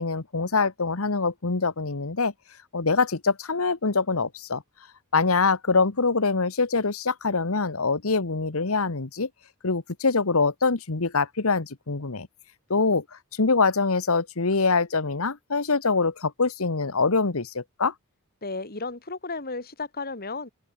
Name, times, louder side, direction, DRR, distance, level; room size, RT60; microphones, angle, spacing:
voice 1, 0.0-2.3 2.7-4.6 5.1-9.3 9.6-12.3 12.7-13.0 13.4-17.9, left 4 dB, 75° left, 1.3 m, -24 dB
voice 2, 18.4-20.5, left 3 dB, 45° left, 3.2 m, -33 dB
open air
head